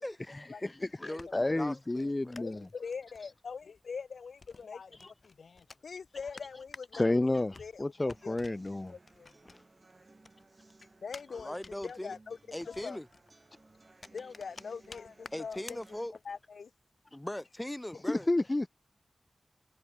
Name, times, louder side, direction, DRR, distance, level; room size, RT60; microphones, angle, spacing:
voice 1, 0.3-2.7 5.0-5.1 6.9-8.9 9.5-9.6 18.1-18.7, left 2 dB, 30° left, 0.4 m, -31 dB
sound 1, 0.7-9.9 10.2-16.5, left 3 dB, 55° left, 2.4 m, -54 dB
voice 2, 1.0-2.4 11.3-12.1 12.5-13.1 15.3-16.1 17.1-18.3, left 1 dB, 15° left, 0.9 m, -40 dB
voice 3, 2.4-8.4 8.9-9.3 11.0-12.4 12.6-13.0 14.1-15.8 16.2-16.7, left 5 dB, 85° left, 0.9 m, -43 dB
sound 2, 8.1-16.1, right 2 dB, 40° right, 2.7 m, -60 dB
cardioid pair, 55°, 0 cm